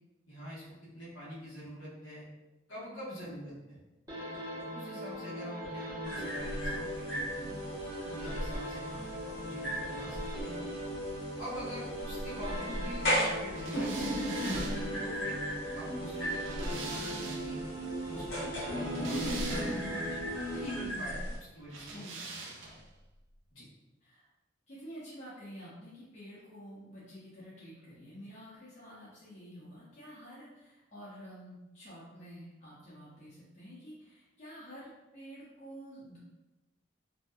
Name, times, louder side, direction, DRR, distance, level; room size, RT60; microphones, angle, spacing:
voice 1, 0.3-2.3 2.7-3.8 4.7-7.5 8.1-10.6 11.4-14.3 15.0-15.4 15.7-17.7 18.0-19.8 20.5-21.2 21.5-22.0 22.4-22.8 23.5-23.6, equal, 80° left, -8 dB, 1.1 m, -45 dB
sound 1, 4.1-21.3, equal, 20° right, 0.8 m, -39 dB
sound 2, 6.0-21.4, equal, 55° left, 1.0 m, -37 dB
sound 3, 13.6-17.7 18.6-20.0 21.7-22.9, right 4 dB, 75° right, 0.4 m, -44 dB
voice 2, 19.9-20.3 20.9-21.2 21.9-22.3 24.0-24.3 24.7-36.2, equal, 35° left, -9 dB, 0.6 m, -49 dB
2.6 x 2.2 x 2.2 m, 1.0 s
head